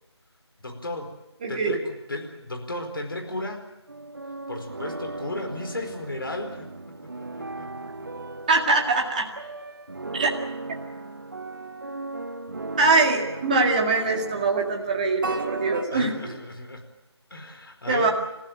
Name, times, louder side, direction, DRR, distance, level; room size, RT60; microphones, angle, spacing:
voice 1, 0.6-1.2 1.5-1.8 2.1-3.7 4.5-6.7 7.1-8.1 12.8-13.0 15.9-16.8 17.3-18.1, left 2 dB, 50° left, 4 dB, 4.5 m, -34 dB
voice 2, 1.4-1.8 8.5-9.3 10.1-10.3 12.8-16.3 17.9-18.1, right 3 dB, 15° right, 0 dB, 2.0 m, -23 dB
sound 1, 3.9-15.8, right 2 dB, 50° right, 1.5 m, -36 dB
28.0 x 15.0 x 9.1 m, 0.95 s
figure-of-eight pair, 170°, 15 cm